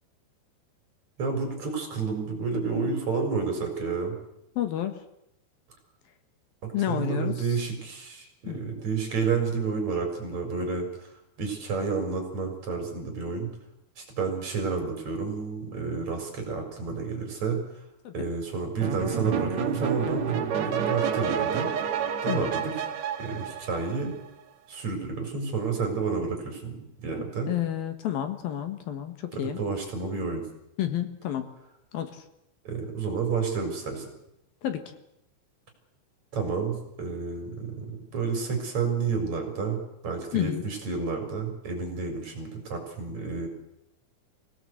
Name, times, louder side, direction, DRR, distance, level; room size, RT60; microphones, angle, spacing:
voice 1, 1.2-4.2 6.6-10.9 11.4-13.5 14.0-17.6 18.1-21.7 22.2-22.7 23.2-24.1 24.7-27.5 29.3-30.4 32.7-34.0 36.3-43.5, right 5 dB, 35° right, 3 dB, 5.4 m, -30 dB
voice 2, 4.6-5.0 6.7-7.3 8.5-8.6 18.0-18.1 22.3-22.5 27.5-29.6 30.8-31.5 31.9-32.1 34.6-34.8 40.3-40.6, left 11 dB, 65° left, 8 dB, 2.8 m, -30 dB
sound 1, 18.8-24.3, right 8 dB, 75° right, 1.6 m, -29 dB
24.5 x 18.0 x 7.9 m, 0.82 s
omnidirectional pair, 5.6 m